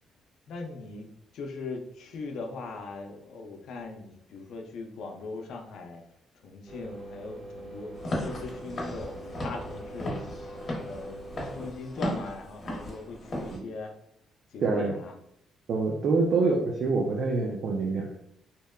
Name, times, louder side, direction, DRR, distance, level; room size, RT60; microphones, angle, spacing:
voice 1, 0.5-6.0 6.3-7.9 8.2-10.2 10.8-13.9 14.5-15.1, left 3 dB, 75° left, 3 dB, 0.4 m, -40 dB
sound 1, 6.7-11.7, right 1 dB, 15° right, 0.8 m, -43 dB
Walk footsteps / Siren, 7.9-13.6, equal, 40° left, 0.8 m, -36 dB
voice 2, 14.6-14.9 15.7-18.1, right 3 dB, 60° right, 0 dB, 0.4 m, -26 dB
2.8 x 2.1 x 2.2 m, 0.73 s
cardioid pair, 90°, 0 cm